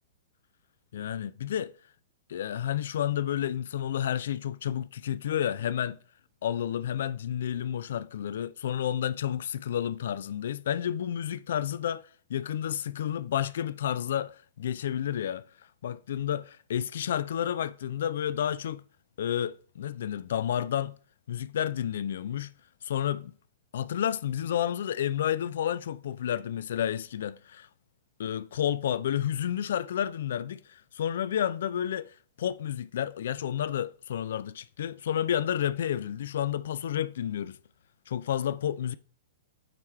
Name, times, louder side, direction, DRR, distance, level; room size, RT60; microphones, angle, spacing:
voice 1, 0.9-1.7 2.3-6.0 6.4-15.4 15.8-18.8 19.2-20.9 21.3-22.5 22.8-23.3 23.7-27.7 28.2-37.6 38.1-38.9, left 10 dB, 60° left, 0.3 m, -30 dB
8.9 x 4.4 x 3.1 m
figure-of-eight pair, 110°, 0 cm